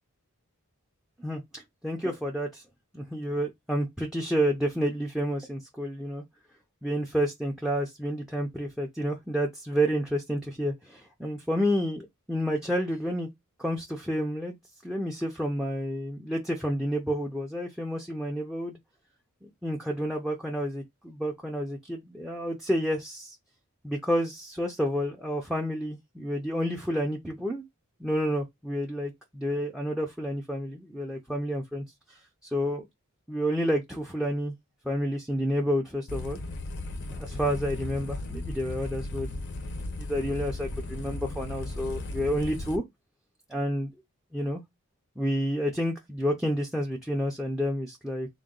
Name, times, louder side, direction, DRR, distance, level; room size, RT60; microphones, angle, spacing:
voice 1, 1.2-2.6 2.9-6.2 6.8-13.3 13.6-14.5 14.8-18.8 19.4-23.4 23.8-27.6 28.0-31.8 32.4-32.8 33.3-34.5 34.8-36.4 37.2-39.4 40.0-42.8 43.5-43.9 44.3-44.6 45.2-48.3, equal, ahead, 0.5 m, -30 dB
sound 1, 36.1-42.8, left 2 dB, 55° left, 0.6 m, -36 dB
3.8 x 2.2 x 3.6 m
head